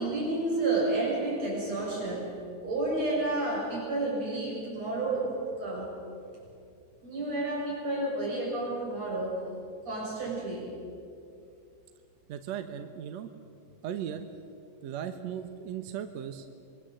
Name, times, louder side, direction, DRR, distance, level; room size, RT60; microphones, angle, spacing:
voice 1, 0.0-6.0 7.0-9.5 9.8-10.7, right 2 dB, 50° right, -4 dB, 8.1 m, -31 dB
voice 2, 12.3-13.3 13.8-14.3 14.8-16.6, right 9 dB, 65° right, 7 dB, 1.9 m, -37 dB
27.0 x 23.0 x 7.7 m, 2.4 s
omnidirectional pair, 3.9 m